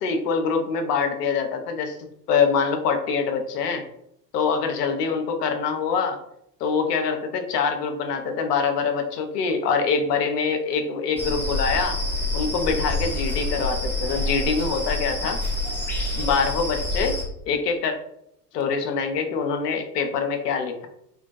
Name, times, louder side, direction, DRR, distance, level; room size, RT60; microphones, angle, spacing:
voice 1, 0.0-2.0 2.3-3.8 4.3-6.2 6.6-12.0 12.3-15.4 16.0-17.2 17.5-18.0 18.5-20.9, left 5 dB, 70° left, 5 dB, 0.6 m, -24 dB
sound 1, 11.2-17.2, left 2 dB, 5° left, 0.5 m, -27 dB
2.3 x 2.1 x 2.6 m, 0.78 s
figure-of-eight pair, 70°, 49 cm